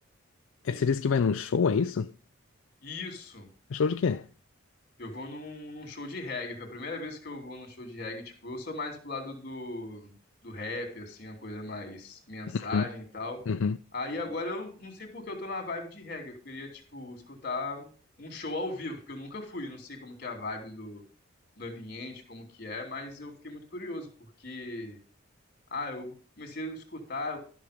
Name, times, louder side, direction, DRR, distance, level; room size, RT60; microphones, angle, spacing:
voice 1, 0.6-2.1 3.7-4.3 12.5-12.8 13.5-13.8, left 5 dB, 75° left, 0.4 m, -26 dB
voice 2, 2.8-3.5 5.0-10.1 10.4-13.4 13.9-17.9 18.2-21.0 21.6-24.1 24.4-25.0 25.7-27.4, left 2 dB, 45° left, 2.9 m, -38 dB
13.0 x 6.2 x 5.1 m
head